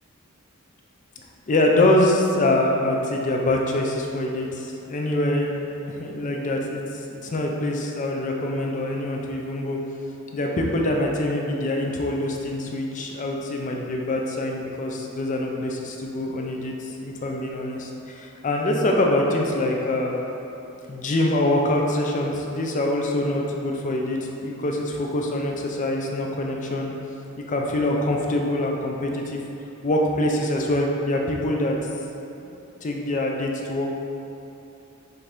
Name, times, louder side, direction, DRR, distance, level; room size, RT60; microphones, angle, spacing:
voice 1, 1.5-6.8 7.1-9.8 10.3-20.1 20.9-26.9 27.5-29.4 29.8-31.7 32.4-32.6 32.8-33.9, left 1 dB, 35° left, 0 dB, 0.4 m, -24 dB
5.7 x 2.6 x 3.4 m, 2.9 s
head